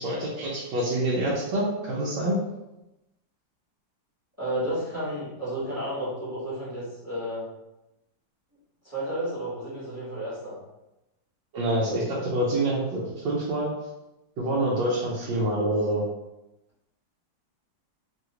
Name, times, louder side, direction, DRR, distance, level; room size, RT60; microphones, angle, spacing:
voice 1, 0.0-2.4 11.5-13.7 14.4-16.0, right 1 dB, 80° right, -6 dB, 1.3 m, -26 dB
voice 2, 4.4-7.5 8.8-10.6, right 1 dB, 10° right, -10 dB, 0.8 m, -32 dB
3.3 x 2.4 x 2.9 m, 0.96 s
omnidirectional pair, 2.0 m